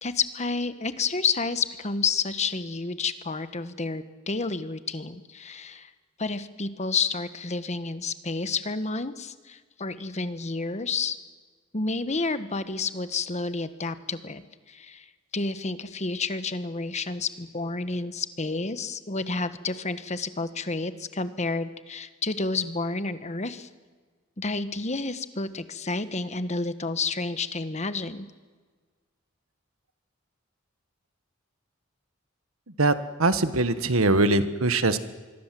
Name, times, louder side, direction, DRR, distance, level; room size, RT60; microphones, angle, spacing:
voice 1, 0.0-5.9 6.2-11.2 11.7-14.4 14.7-15.1 15.3-23.7 24.4-28.3, left 4 dB, 35° left, 12 dB, 1.3 m, -30 dB
voice 2, 33.2-35.0, right 2 dB, 85° right, 11 dB, 1.5 m, -22 dB
26.0 x 22.0 x 7.7 m, 1.5 s
head